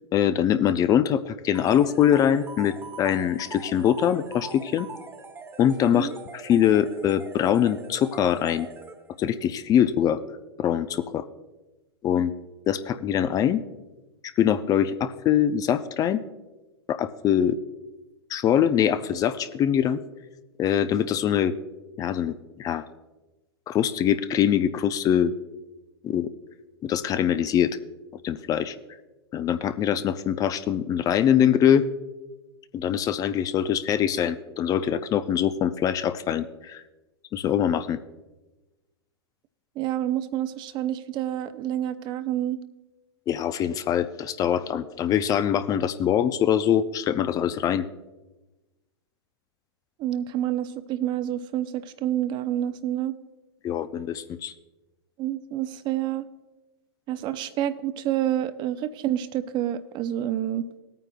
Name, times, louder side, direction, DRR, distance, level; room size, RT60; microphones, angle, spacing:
voice 1, 0.1-4.9 5.6-8.7 9.2-10.2 10.6-11.2 12.0-12.3 12.7-13.6 14.2-16.2 16.9-17.6 18.3-20.0 20.6-21.5 22.0-22.9 23.7-25.3 26.0-26.3 26.8-27.8 28.2-28.8 29.3-31.8 32.7-36.8 37.3-38.0 43.3-47.9 53.6-54.5, left 9 dB, 25° left, 12 dB, 0.4 m, -23 dB
sound 1, 1.5-9.3, right 4 dB, 15° right, 1.2 m, -42 dB
voice 2, 39.8-42.6 50.0-53.1 55.2-56.2 57.1-60.7, right 11 dB, 35° right, 13 dB, 0.6 m, -28 dB
19.0 x 9.1 x 2.3 m, 1.1 s
hypercardioid pair, 105°, 14 cm